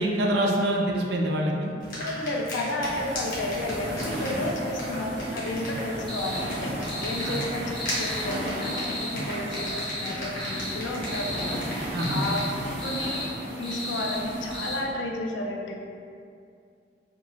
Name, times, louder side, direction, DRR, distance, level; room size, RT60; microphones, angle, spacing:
voice 1, 0.0-1.7 7.2-7.4 11.9-12.2, right 1 dB, 65° right, 0 dB, 0.4 m, -25 dB
sound 1, 1.8-12.9, equal, 50° left, 0.9 m, -38 dB
voice 2, 2.0-11.6 12.1-12.4 12.8-13.3 13.6-15.8, left 1 dB, 85° left, 0 dB, 0.4 m, -32 dB
sound 2, 2.8-14.8, equal, 80° right, 0.8 m, -35 dB
sound 3, 6.1-6.4 6.8-7.5 7.7-8.3 8.6-9.1 9.5-10.1 10.3-10.8 11.0-11.6 11.9-12.5 12.8-13.3 13.6-14.2 14.5-14.8, left 1 dB, ahead, 0.5 m, -35 dB
2.6 x 2.4 x 3.0 m, 2.4 s
head